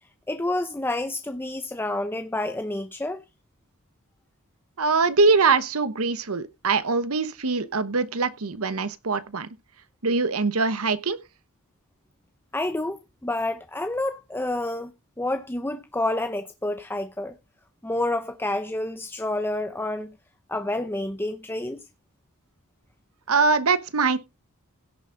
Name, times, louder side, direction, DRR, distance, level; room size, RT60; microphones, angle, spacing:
voice 1, 0.3-3.2 12.5-14.9 15.2-17.4 17.8-20.1 20.5-21.8, left 2 dB, 10° left, 0.7 m, -29 dB
voice 2, 4.8-9.5 10.0-11.2 23.3-24.2, right 4 dB, 70° right, 1.0 m, -23 dB
16.5 x 7.2 x 3.8 m
head